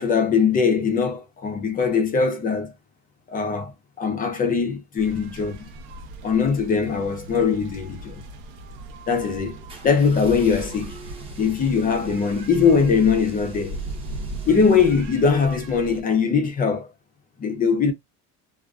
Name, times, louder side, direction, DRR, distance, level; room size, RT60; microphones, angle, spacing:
voice 1, 0.0-2.7 3.3-3.7 4.0-5.7 6.2-8.2 9.1-9.6 9.8-11.0 11.4-13.8 14.5-16.9 17.4-17.9, left 5 dB, 25° left, 0.5 m, -21 dB
sound 1, 5.0-16.0, right 2 dB, 75° right, 0.8 m, -38 dB
sound 2, 9.7-15.7, right 1 dB, 15° right, 0.8 m, -43 dB
2.5 x 2.4 x 2.3 m
cardioid pair, 150°, 36 cm